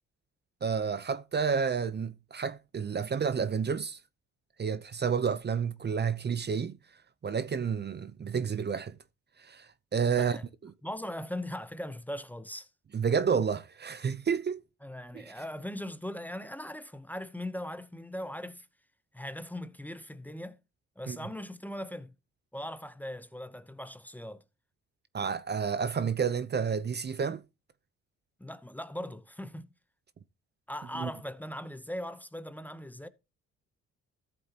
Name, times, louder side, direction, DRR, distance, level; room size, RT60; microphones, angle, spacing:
voice 1, 0.6-4.0 4.6-6.8 7.2-9.0 9.4-10.4 10.6-10.7 12.9-14.6 15.1-15.3 21.1-21.2 25.1-27.4 30.9-31.1, right 6 dB, 35° right, 0.7 m, -30 dB
voice 2, 10.8-12.7 14.8-18.7 19.1-20.6 21.0-22.1 22.5-24.4 28.4-29.7 30.7-33.1, left 1 dB, 5° left, 0.8 m, -39 dB
14.0 x 7.9 x 2.9 m
cardioid pair, 90°, 30 cm